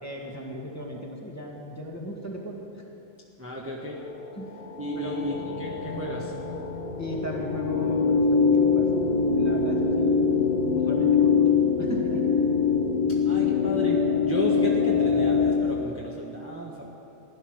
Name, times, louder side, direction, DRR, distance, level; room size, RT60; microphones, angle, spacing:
voice 1, 0.0-2.8 4.3-4.5 4.9-5.3 7.0-10.3 10.7-12.4, equal, 10° left, -3 dB, 1.9 m, -37 dB
voice 2, 3.4-4.0 4.8-6.3 13.2-14.0 14.2-16.8, equal, 10° right, -3 dB, 1.4 m, -32 dB
sound 1, 4.1-15.6, left 5 dB, 45° left, 1.4 m, -24 dB
16.5 x 11.5 x 6.4 m, 2.9 s
omnidirectional pair, 1.3 m